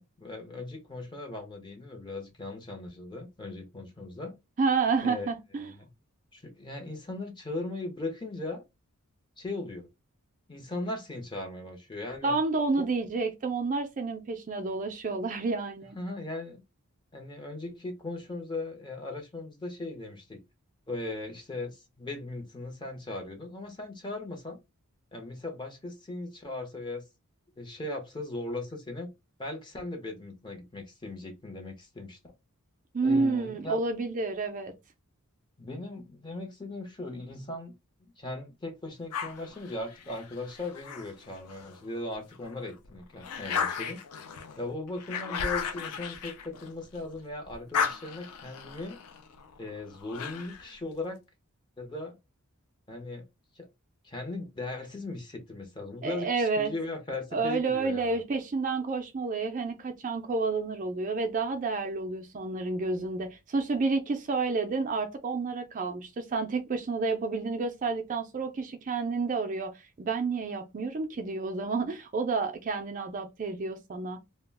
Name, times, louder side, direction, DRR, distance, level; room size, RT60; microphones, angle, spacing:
voice 1, 0.0-4.4 5.0-5.3 5.6-5.9 6.3-8.6 9.4-9.9 10.5-12.4 12.8-12.9 15.9-16.6 17.1-20.4 20.9-24.6 25.1-27.1 27.6-29.1 29.4-32.3 33.0-33.8 35.6-37.7 38.2-44.0 44.6-49.0 49.6-51.2 51.8-52.2 52.9-53.2 53.6-53.7 54.0-58.2, left 2 dB, 20° left, 0.6 m, -38 dB
voice 2, 4.6-5.7 12.2-16.0 32.9-34.7 56.0-56.7 57.3-74.2, right 4 dB, 35° right, 0.3 m, -30 dB
sound 1, 39.1-41.8 42.3-47.1 47.4-50.7, left 6 dB, 90° left, 0.4 m, -36 dB
2.3 x 2.1 x 3.3 m
head